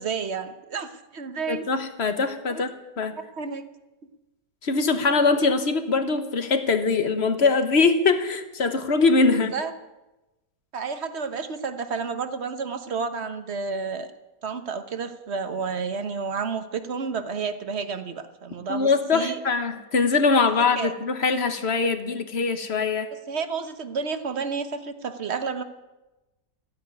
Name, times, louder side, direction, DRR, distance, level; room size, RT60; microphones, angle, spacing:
voice 1, 0.0-1.6 2.5-2.6 3.4-3.7 9.5-9.7 10.7-14.1 14.4-19.4 20.8-20.9 23.3-25.6, right 5 dB, 45° right, 10 dB, 1.1 m, -30 dB
voice 2, 1.5-2.7 3.0-3.2 4.6-9.5 18.7-23.1, left 4 dB, 40° left, 9 dB, 1.2 m, -22 dB
14.5 x 9.8 x 9.5 m, 1.0 s
omnidirectional pair, 1.9 m